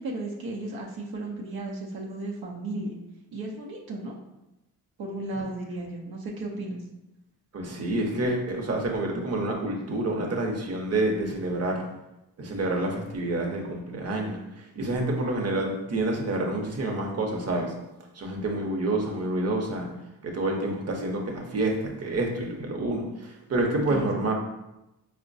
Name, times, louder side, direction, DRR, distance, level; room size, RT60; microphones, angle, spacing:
voice 1, 0.0-2.9 3.3-4.2 5.0-6.8 23.9-24.1, right 2 dB, 70° right, -1 dB, 0.7 m, -34 dB
voice 2, 7.5-11.8 12.4-17.7 18.1-19.9 20.2-24.3, right 2 dB, 40° right, 1 dB, 0.9 m, -28 dB
4.5 x 2.1 x 2.6 m, 0.92 s
cardioid pair, 60°, 39 cm